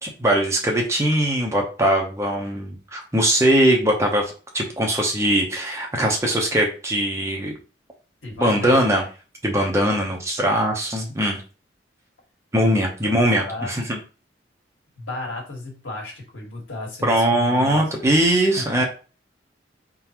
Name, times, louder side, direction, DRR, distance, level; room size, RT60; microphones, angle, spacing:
voice 1, 0.0-7.5 8.4-9.0 9.4-11.4 12.5-14.0 17.0-18.8, right 1 dB, 15° right, 0 dB, 0.8 m, -21 dB
voice 2, 8.2-8.9 12.7-13.1 13.4-13.7 15.0-18.1 18.5-18.9, left 2 dB, 85° left, 0 dB, 1.8 m, -34 dB
4.6 x 3.8 x 3.0 m, 0.35 s
head